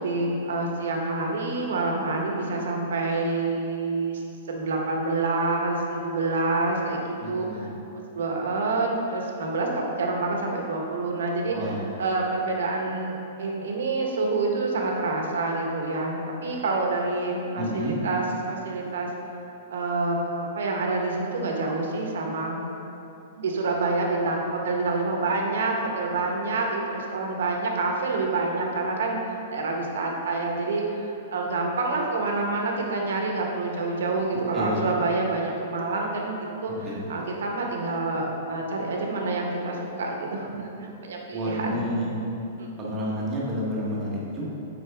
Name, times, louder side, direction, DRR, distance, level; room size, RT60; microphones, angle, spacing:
voice 1, 0.0-4.2 4.5-7.0 7.3-7.5 8.1-11.5 12.0-19.1 19.7-22.6 23.4-36.7 37.1-41.9 42.6-42.7, right 3 dB, 85° right, 0 dB, 1.1 m, -27 dB
voice 2, 7.2-7.8 11.5-11.9 17.6-18.0 34.5-34.9 36.8-37.0 41.3-42.1 42.8-44.5, equal, 15° right, -6 dB, 1.1 m, -30 dB
8.9 x 4.3 x 3.5 m, 3.0 s
hypercardioid pair, 170°, 0 cm